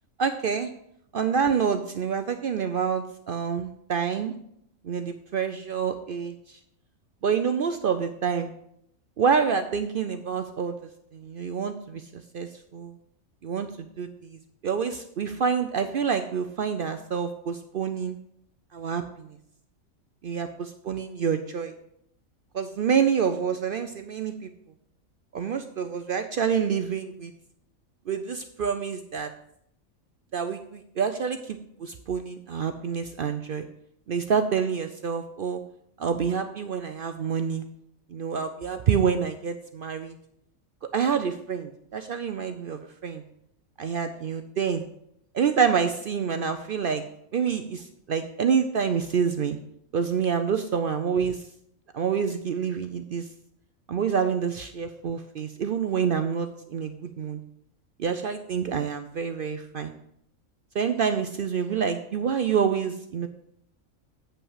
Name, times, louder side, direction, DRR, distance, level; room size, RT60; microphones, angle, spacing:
voice 1, 0.2-0.7 1.1-4.3 4.8-6.6 7.2-8.5 9.2-13.0 13.4-18.2 18.7-19.4 20.2-21.7 22.5-24.5 25.3-27.3 28.1-29.3 30.3-33.6 34.1-35.6 36.0-37.7 38.1-40.2 40.9-43.2 43.8-44.8 45.3-47.0 47.3-49.6 49.9-51.5 51.9-53.3 53.9-57.4 58.0-59.9 60.7-63.3, right 6 dB, 65° right, 8 dB, 0.5 m, -27 dB
8.5 x 5.6 x 5.6 m, 0.73 s
omnidirectional pair, 1.4 m